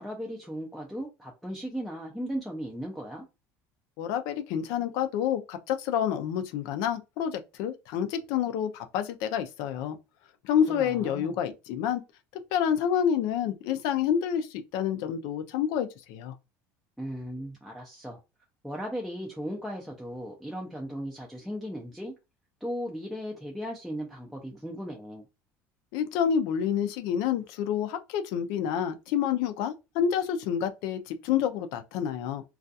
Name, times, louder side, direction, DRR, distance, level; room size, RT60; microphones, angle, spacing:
voice 1, 0.0-3.3 10.7-11.3 17.0-18.2 18.6-22.1 22.6-25.3, equal, ahead, 0.4 m, -37 dB
voice 2, 4.0-10.0 10.4-12.0 12.5-16.3 25.9-32.4, left 8 dB, 70° left, 0.4 m, -28 dB
2.3 x 2.3 x 2.6 m
cardioid pair, 155°, 7 cm